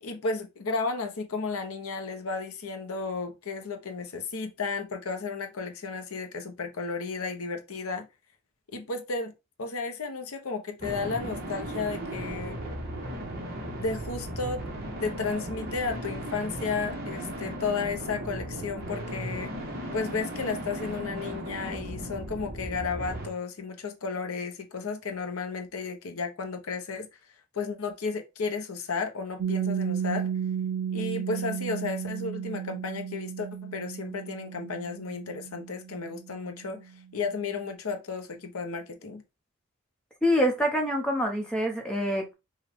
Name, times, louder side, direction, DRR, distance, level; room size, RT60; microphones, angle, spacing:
voice 1, 0.0-8.1 8.7-9.3 9.6-12.6 13.8-14.6 15.0-19.5 19.9-27.1 27.5-30.3 30.9-36.8 37.1-39.2, left 4 dB, 75° left, 0.8 m, -33 dB
sound 1, 10.8-23.3, right 1 dB, 40° right, 1.2 m, -36 dB
Piano, 29.4-36.7, right 8 dB, 85° right, 0.4 m, -33 dB
voice 2, 40.2-42.3, equal, 5° left, 0.9 m, -26 dB
5.5 x 2.3 x 3.5 m
head